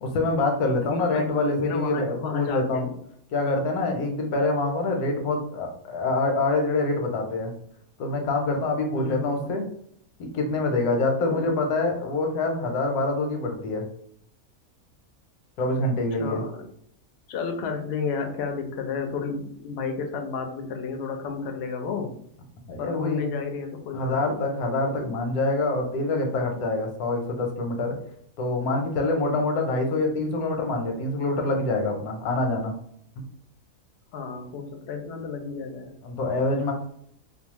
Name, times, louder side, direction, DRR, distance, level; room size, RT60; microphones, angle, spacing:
voice 1, 0.0-2.9 3.3-7.5 8.0-9.7 10.2-13.9 15.6-16.4 22.7-23.2 23.9-27.9 28.4-32.7 36.0-36.7, left 2 dB, 90° left, 3 dB, 1.1 m, -25 dB
voice 2, 0.8-3.0 8.9-9.5 11.3-11.5 16.2-16.6 17.3-22.1 22.8-24.5 25.0-25.2 34.1-35.9, left 5 dB, 70° left, 5 dB, 0.6 m, -32 dB
2.7 x 2.1 x 2.9 m, 0.67 s
omnidirectional pair, 1.6 m